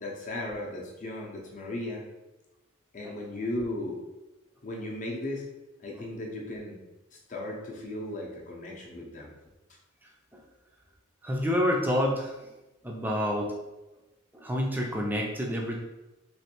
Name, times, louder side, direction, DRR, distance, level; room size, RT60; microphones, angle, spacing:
voice 1, 0.0-2.0 2.9-4.0 4.6-5.4 5.8-6.8 7.1-9.3, left 1 dB, 35° left, -1 dB, 0.6 m, -36 dB
voice 2, 11.2-12.3 12.8-13.6 14.3-15.8, equal, 10° right, -1 dB, 0.4 m, -28 dB
3.1 x 3.1 x 2.9 m, 1.0 s
head